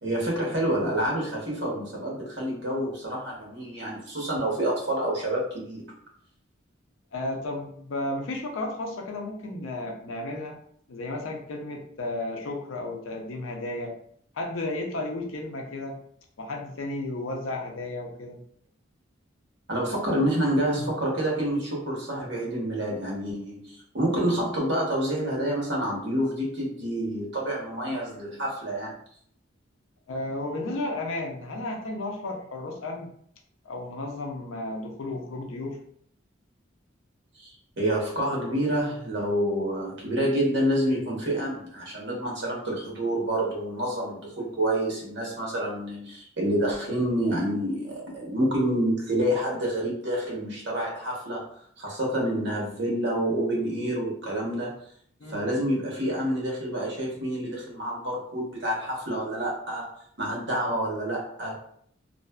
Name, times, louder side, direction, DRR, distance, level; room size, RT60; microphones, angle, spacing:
voice 1, 0.0-5.9 19.7-28.9 37.4-37.5 37.8-51.4 51.8-54.7 55.3-59.9 60.2-61.6, right 1 dB, 60° right, -3 dB, 0.9 m, -28 dB
voice 2, 7.1-10.6 10.9-13.9 14.3-16.0 16.4-18.4 20.8-20.9 30.1-33.1 33.6-35.8 55.2-55.4, left 2 dB, 85° left, 2 dB, 0.5 m, -33 dB
2.5 x 2.3 x 2.2 m, 0.64 s
head